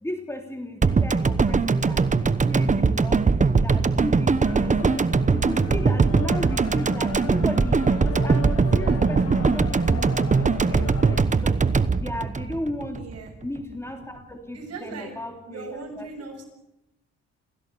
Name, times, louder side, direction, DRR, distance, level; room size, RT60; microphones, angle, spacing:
voice 1, 0.0-2.0 2.4-3.2 3.6-5.0 5.3-11.6 11.9-13.0 13.4-15.7 16.0-16.1, left 1 dB, 10° left, 4 dB, 3.2 m, -35 dB
sound 1, 0.8-13.2 13.4-13.5, right 4 dB, 25° right, 1.1 m, -21 dB
sound 2, 4.4-11.2, left 8 dB, 55° left, 1.5 m, -37 dB
voice 2, 12.9-13.3 14.5-15.1 15.5-16.4, right 4 dB, 55° right, 2 dB, 7.4 m, -38 dB
28.5 x 16.0 x 7.0 m, 0.87 s
cardioid pair, 90°, 30 cm